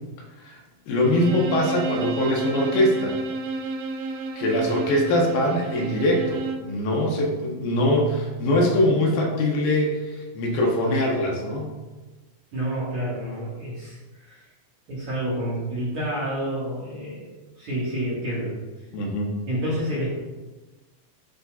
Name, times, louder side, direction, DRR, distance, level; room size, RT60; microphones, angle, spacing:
voice 1, 0.9-3.2 4.4-11.7 18.9-19.4, left 1 dB, 75° left, -1 dB, 2.7 m, -22 dB
Bowed string instrument, 0.9-6.7, right 4 dB, 85° right, 2.4 m, -31 dB
voice 2, 12.5-14.4 14.9-18.6 19.5-20.1, right 1 dB, 50° right, -8 dB, 2.0 m, -29 dB
10.5 x 4.0 x 2.4 m, 1.2 s
omnidirectional pair, 4.2 m